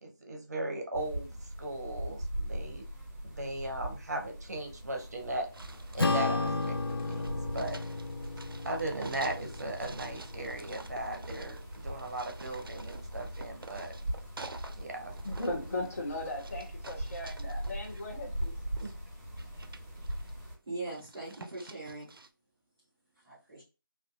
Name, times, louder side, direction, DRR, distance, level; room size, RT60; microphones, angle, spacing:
voice 1, 0.0-2.8 3.2-5.5 5.9-7.8 8.6-13.9 14.8-15.1 18.8-18.9, right 1 dB, 50° right, 0.7 m, -37 dB
sound 1, 0.9-20.6, right 1 dB, 35° right, 1.4 m, -41 dB
sound 2, 5.5-14.8 15.1-19.0 19.3-20.5 20.8-22.3, right 3 dB, 80° right, 0.4 m, -50 dB
Acoustic guitar / Strum, 6.0-10.7, left 3 dB, 85° left, 0.5 m, -33 dB
voice 2, 15.2-18.6, left 2 dB, 40° left, 0.7 m, -37 dB
voice 3, 20.7-22.1 23.2-23.6, right 2 dB, 5° right, 0.3 m, -40 dB
2.6 x 2.3 x 2.4 m
figure-of-eight pair, 160°, 12 cm